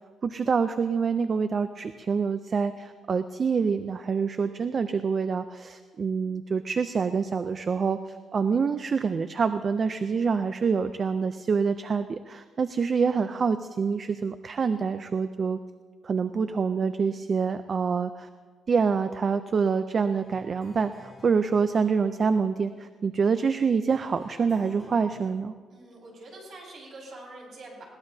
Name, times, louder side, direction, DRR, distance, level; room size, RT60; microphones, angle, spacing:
voice 1, 0.2-15.6 16.0-18.3 18.7-25.5, right 5 dB, 35° right, 10 dB, 0.4 m, -26 dB
sound 1, 20.2-21.5 23.9-25.2, left 1 dB, 10° left, 3.9 m, -51 dB
voice 2, 25.7-27.8, right 2 dB, 55° right, -2 dB, 5.2 m, -46 dB
21.0 x 17.0 x 2.8 m, 1.5 s
cardioid pair, 140°, 0 cm